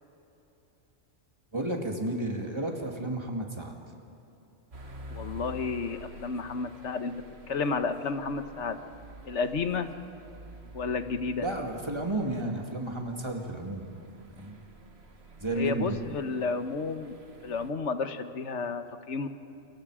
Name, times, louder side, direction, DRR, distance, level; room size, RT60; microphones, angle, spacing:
voice 1, 1.5-3.7 11.4-13.9 14.3-14.5 15.4-16.0, right 2 dB, 25° right, 1 dB, 2.5 m, -32 dB
sound 1, 4.7-17.7, equal, 65° right, 2.0 m, -49 dB
voice 2, 5.1-7.1 7.5-8.8 9.2-9.9 10.7-11.4 15.5-17.2 17.4-19.3, left 4 dB, 80° left, 9 dB, 1.4 m, -31 dB
28.5 x 23.5 x 5.0 m, 2.9 s
omnidirectional pair, 1.2 m